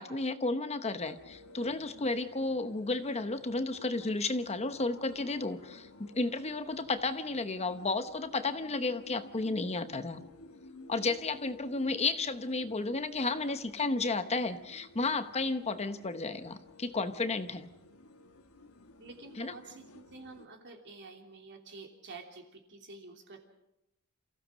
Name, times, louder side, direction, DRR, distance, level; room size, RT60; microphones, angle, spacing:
voice 1, 0.0-10.2 10.9-17.7 19.4-19.5, left 3 dB, 30° left, 10 dB, 0.9 m, -33 dB
sound 1, 1.0-20.5, left 2 dB, 70° left, 1.4 m, -54 dB
voice 2, 19.0-23.4, right 3 dB, 55° right, 2 dB, 3.1 m, -49 dB
28.5 x 16.0 x 6.3 m, 0.92 s
head